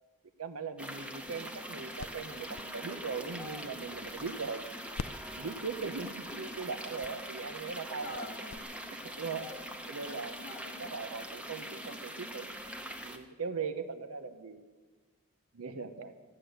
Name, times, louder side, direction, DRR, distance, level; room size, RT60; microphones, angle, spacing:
voice 1, 0.4-4.7 5.3-8.3 9.0-9.5 9.9-10.3 10.8-12.5 13.0-14.6 15.5-16.1, right 5 dB, 80° right, 9 dB, 0.8 m, -39 dB
sound 1, 0.8-13.2, equal, 5° right, 0.9 m, -43 dB
sound 2, 1.2-4.6 4.9-8.6, left 5 dB, 75° left, 0.5 m, -48 dB
voice 2, 6.3-6.7 8.0-8.9 10.1-10.9, left 2 dB, 50° left, 3 dB, 0.9 m, -47 dB
14.5 x 9.8 x 7.8 m, 1.3 s
head